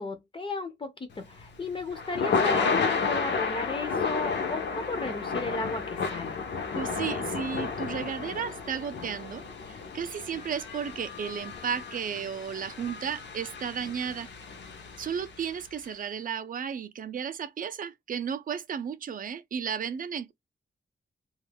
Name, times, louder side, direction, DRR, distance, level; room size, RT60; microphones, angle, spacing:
voice 1, 0.0-6.4, left 3 dB, 30° left, 0.4 m, -35 dB
Thunder / Rain, 1.2-15.4, left 5 dB, 70° left, 0.6 m, -32 dB
voice 2, 6.7-14.3 15.0-20.3, right 7 dB, 45° right, 0.4 m, -34 dB
2.3 x 2.1 x 3.2 m
wide cardioid pair, 175°, 19 cm